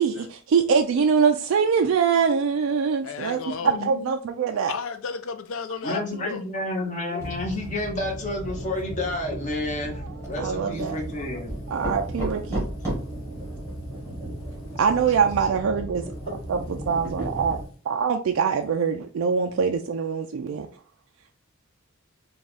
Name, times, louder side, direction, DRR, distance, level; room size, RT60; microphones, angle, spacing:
voice 1, 0.0-4.7 10.4-11.0 11.7-12.7 14.8-16.0 16.5-17.6 17.9-20.7, right 6 dB, 70° right, 0.3 m, -23 dB
voice 2, 3.0-3.8 4.7-6.4, left 5 dB, 65° left, 0.4 m, -33 dB
voice 3, 3.6-4.1 5.8-11.6 16.3-16.4, left 2 dB, 35° left, 0.9 m, -30 dB
sound 1, 7.2-17.7, right 1 dB, 10° left, 1.3 m, -34 dB
3.5 x 2.3 x 4.0 m
head